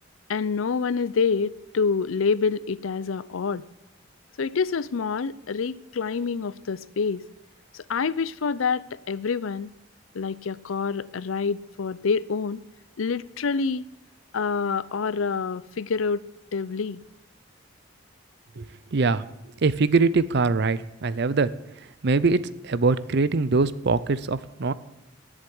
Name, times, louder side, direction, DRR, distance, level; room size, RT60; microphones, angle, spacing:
voice 1, 0.3-3.6 4.4-7.2 7.7-9.7 10.1-12.6 13.0-13.9 14.3-16.3 16.5-17.0, left 5 dB, 90° left, 0.5 m, -27 dB
voice 2, 18.9-19.2 19.6-21.5 22.0-24.7, right 4 dB, 55° right, 0.6 m, -22 dB
11.5 x 7.4 x 8.5 m
head